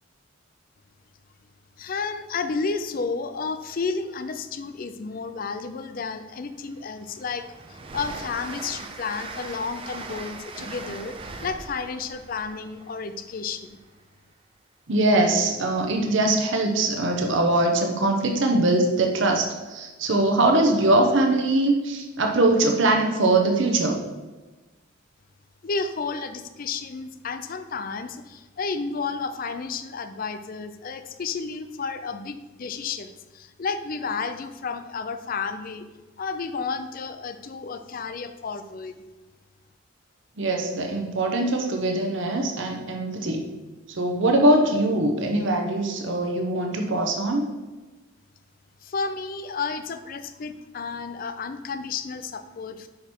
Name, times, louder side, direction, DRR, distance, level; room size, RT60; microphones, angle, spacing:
voice 1, 1.8-11.2 11.4-13.8 25.6-35.8 36.2-38.9 48.8-52.9, left 4 dB, 45° left, 10 dB, 0.4 m, -32 dB
Train, 5.8-5.9 6.3-14.0, right 3 dB, 25° right, 0.5 m, -41 dB
voice 2, 14.9-24.0 40.4-43.5 43.9-47.4, right 2 dB, 60° right, 2 dB, 0.8 m, -22 dB
6.0 x 5.0 x 4.3 m, 1.2 s
head